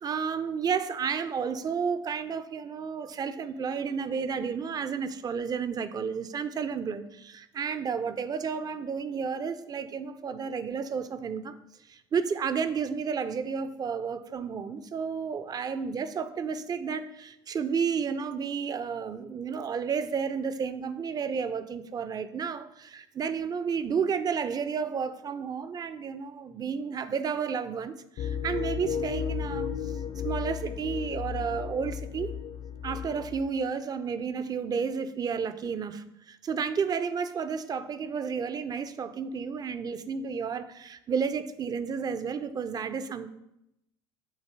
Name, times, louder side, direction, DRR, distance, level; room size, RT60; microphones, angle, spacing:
voice 1, 0.0-11.5 11.9-29.9 30.2-32.3 32.8-43.3, right 6 dB, 35° right, 12 dB, 0.5 m, -32 dB
sound 1, 28.2-33.5, left 8 dB, 60° left, 0.7 m, -34 dB
8.1 x 2.7 x 4.6 m, 0.84 s
hypercardioid pair, 80°, 12 cm